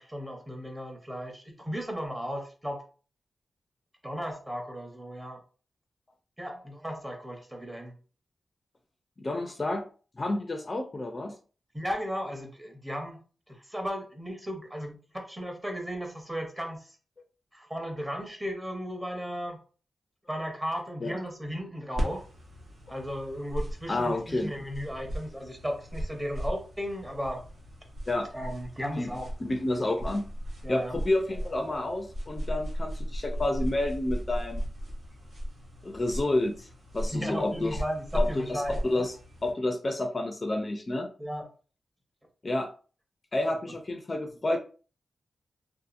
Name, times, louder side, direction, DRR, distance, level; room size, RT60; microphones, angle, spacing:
voice 1, 0.0-2.8 4.0-5.4 6.4-7.9 11.7-13.2 13.5-16.9 17.5-19.6 20.3-22.2 22.9-27.4 28.3-29.3 30.6-30.9 37.1-39.1 41.2-41.5, equal, 15° right, 2 dB, 0.8 m, -35 dB
voice 2, 9.2-9.8 10.2-11.4 21.0-21.2 23.9-24.5 28.1-28.3 29.0-29.1 29.4-30.3 30.7-34.6 35.8-36.7 36.9-37.8 38.1-39.1 39.4-41.1 42.4-42.7 43.3-44.6, left 2 dB, 35° left, 5 dB, 0.4 m, -29 dB
sound 1, 22.0-39.5, equal, 70° right, 0.9 m, -36 dB
2.7 x 2.4 x 2.5 m, 0.37 s
wide cardioid pair, 90°, 0 cm